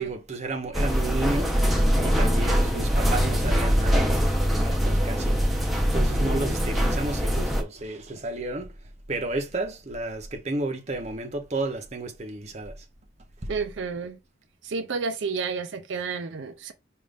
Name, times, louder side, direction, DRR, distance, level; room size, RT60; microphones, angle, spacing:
voice 1, 0.0-1.8 2.0-5.4 5.9-8.7 9.1-12.8 13.4-13.5, right 2 dB, 35° right, 0.7 m, -32 dB
sound 1, 0.7-7.6, equal, ahead, 0.6 m, -23 dB
voice 2, 13.5-14.2 14.6-16.7, right 5 dB, 70° right, 0.5 m, -31 dB
5.2 x 2.5 x 3.4 m
head